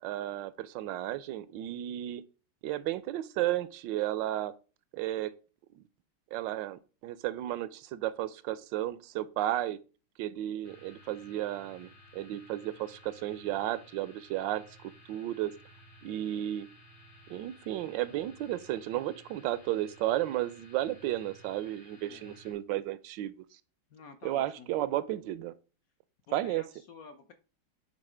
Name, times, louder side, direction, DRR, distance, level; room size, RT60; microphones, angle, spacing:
voice 1, 0.0-2.2 2.6-4.5 4.9-5.3 5.7-5.8 6.3-9.8 10.2-15.5 16.0-16.7 17.3-23.3 24.2-25.5 26.3-26.6, right 14 dB, 75° right, 1.1 m, -33 dB
sound 1, 10.6-22.5, left 1 dB, 90° left, 3.5 m, -56 dB
voice 2, 22.1-22.4 23.9-24.7 26.3-27.3, left 4 dB, 60° left, 0.9 m, -51 dB
9.8 x 3.7 x 4.9 m
omnidirectional pair, 2.3 m